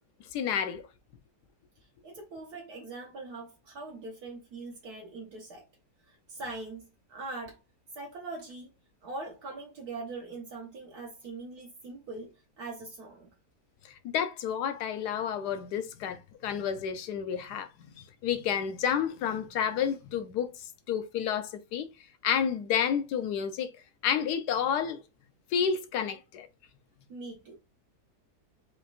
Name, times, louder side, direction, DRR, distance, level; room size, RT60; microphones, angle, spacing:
voice 1, 0.3-0.8 14.0-17.7 18.0-21.9 22.2-23.7 24.0-25.0 25.5-26.5, left 8 dB, 85° left, 1.2 m, -30 dB
voice 2, 2.0-5.6 6.1-7.6 7.9-8.7 9.0-13.3 27.1-27.5, right 3 dB, 70° right, 1.6 m, -42 dB
4.9 x 3.2 x 2.4 m
omnidirectional pair, 1.7 m